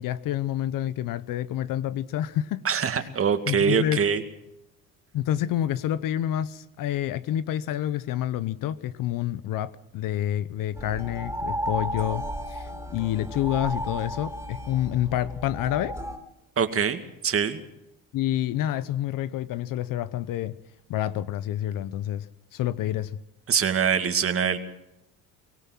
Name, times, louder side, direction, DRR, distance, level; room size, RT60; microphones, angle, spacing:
voice 1, 0.0-2.6 3.0-3.1 3.5-4.0 5.1-16.0 18.1-20.6 20.9-22.3 22.5-23.2, left 12 dB, 65° left, 16 dB, 0.9 m, -28 dB
voice 2, 2.6-4.2 16.6-17.6 23.5-24.6, right 7 dB, 40° right, 8 dB, 2.3 m, -24 dB
sound 1, 10.7-16.2, equal, 10° right, 3.6 m, -33 dB
24.0 x 17.5 x 6.1 m, 0.87 s
cardioid pair, 105°, 35 cm